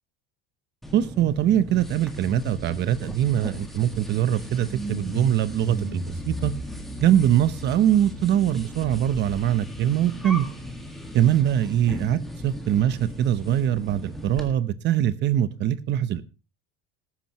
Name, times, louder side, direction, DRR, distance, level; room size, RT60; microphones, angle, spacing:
sound 1, 0.8-14.5, equal, ahead, 1.9 m, -36 dB
voice 1, 0.9-6.5 7.0-10.5 11.1-16.2, right 11 dB, 35° right, 0.9 m, -22 dB
19.5 x 10.0 x 3.0 m
cardioid pair, 170°, 30 cm